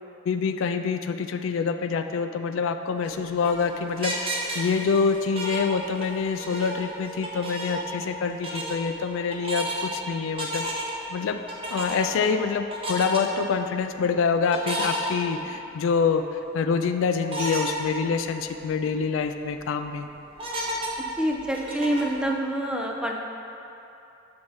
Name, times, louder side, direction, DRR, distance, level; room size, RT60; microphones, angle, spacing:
voice 1, 0.3-4.3 4.5-10.7 11.1-11.4 11.7-20.1, left 5 dB, 80° left, 8 dB, 0.3 m, -26 dB
sound 1, 3.0-6.1 6.4-8.1 8.4-8.8 9.3-9.9 10.4-11.0 11.5-12.3 12.7-13.2 14.5-15.7 16.2-16.3 17.3-17.7 18.2-18.3 18.6-18.7 19.2-19.6 20.4-22.2, right 1 dB, 30° right, 0.8 m, -32 dB
voice 2, 21.2-23.2, right 1 dB, 5° right, 0 dB, 0.4 m, -26 dB
6.3 x 4.2 x 4.6 m, 2.8 s
head